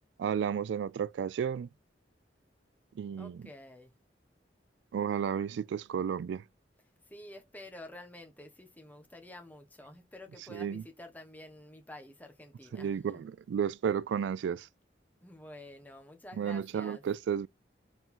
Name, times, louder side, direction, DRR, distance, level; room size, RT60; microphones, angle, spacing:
voice 1, 0.2-1.7 3.0-3.4 4.9-6.4 10.5-10.8 12.7-14.7 16.4-17.5, right 7 dB, 80° right, 0.3 m, -32 dB
voice 2, 3.2-3.9 7.1-13.2 15.2-17.0, left 1 dB, 10° left, 1.3 m, -50 dB
4.8 x 3.8 x 5.6 m
head